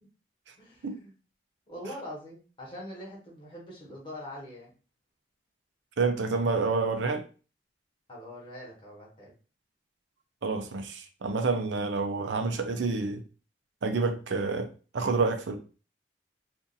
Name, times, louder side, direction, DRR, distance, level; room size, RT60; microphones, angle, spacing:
voice 1, 0.6-1.1 1.7-4.7 8.1-9.3, left 1 dB, 25° left, 1.2 m, -43 dB
voice 2, 6.0-7.3 10.4-13.2 13.8-15.6, right 4 dB, 85° right, 0.5 m, -28 dB
2.6 x 2.6 x 3.9 m
head